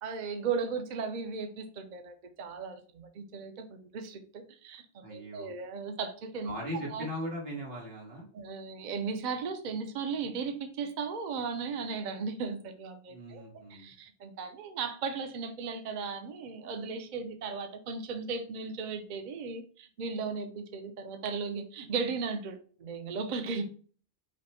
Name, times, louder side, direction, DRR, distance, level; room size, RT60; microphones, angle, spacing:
voice 1, 0.0-4.8 5.1-7.1 8.3-23.7, right 5 dB, 50° right, 6 dB, 0.6 m, -36 dB
voice 2, 5.0-5.5 6.5-8.3 13.1-13.9, equal, 90° right, -2 dB, 1.9 m, -39 dB
5.2 x 2.1 x 4.2 m, 0.43 s
omnidirectional pair, 1.1 m